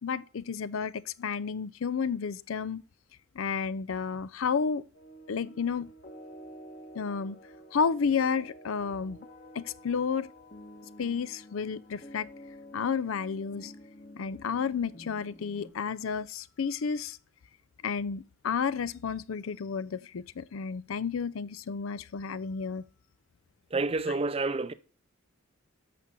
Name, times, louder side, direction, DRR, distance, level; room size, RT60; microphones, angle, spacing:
voice 1, 0.0-2.8 3.3-4.8 5.3-5.9 6.9-7.4 7.7-9.2 9.5-10.3 11.0-12.3 12.7-13.7 14.2-17.2 17.8-22.8, left 6 dB, 75° left, 0.5 m, -31 dB
sound 1, 4.9-15.7, equal, 40° left, 1.4 m, -50 dB
voice 2, 23.7-24.7, right 3 dB, 30° right, 0.5 m, -29 dB
8.3 x 6.2 x 3.7 m
head